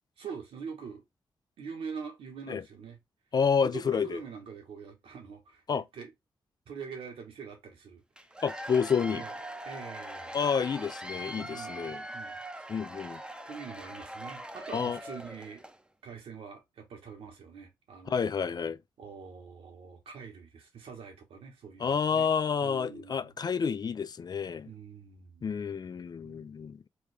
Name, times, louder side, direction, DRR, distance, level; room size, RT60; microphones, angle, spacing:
voice 1, 0.2-1.0 1.6-3.0 3.6-6.1 6.7-8.0 9.1-9.4 9.6-10.4 11.3-12.7 13.4-15.6 16.0-18.2 19.0-22.3 22.6-23.3 24.6-25.4 26.2-26.5, right 6 dB, 80° right, 1.2 m, -44 dB
voice 2, 3.3-4.2 5.7-5.8 8.4-9.2 10.3-12.0 12.7-13.2 14.7-15.0 18.1-18.8 21.8-24.7 25.4-26.9, left 6 dB, 45° left, 0.4 m, -29 dB
Cheering / Applause / Crowd, 8.2-15.8, right 1 dB, 10° right, 0.6 m, -42 dB
3.3 x 2.3 x 3.3 m
supercardioid pair, 45°, 9 cm